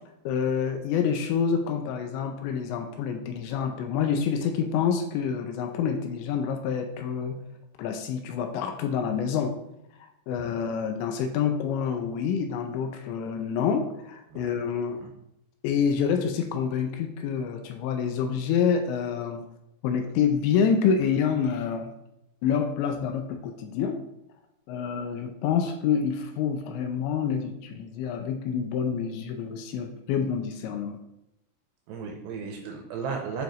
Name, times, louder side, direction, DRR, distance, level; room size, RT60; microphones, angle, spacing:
voice 1, 0.3-7.4 7.8-9.6 10.3-15.0 15.6-19.4 19.8-21.9 22.4-24.0 24.7-31.0, left 7 dB, 80° left, 6 dB, 2.7 m, -27 dB
voice 2, 31.9-33.4, right 5 dB, 80° right, 2 dB, 2.6 m, -35 dB
9.1 x 4.9 x 3.0 m, 0.84 s
omnidirectional pair, 5.5 m